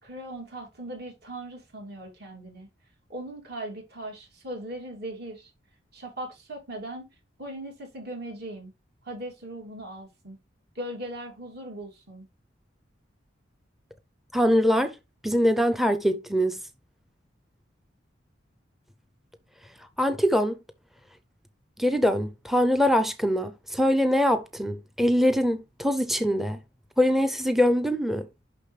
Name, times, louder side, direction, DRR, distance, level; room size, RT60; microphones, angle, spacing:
voice 1, 0.0-2.7 3.1-5.5 5.9-7.1 7.4-8.7 9.0-10.4 10.7-12.3, right 1 dB, 55° right, 2.8 m, -39 dB
voice 2, 14.3-14.9 15.2-16.6 20.0-20.6 21.8-26.6 27.0-28.3, equal, ahead, 0.5 m, -23 dB
6.8 x 5.8 x 3.3 m
head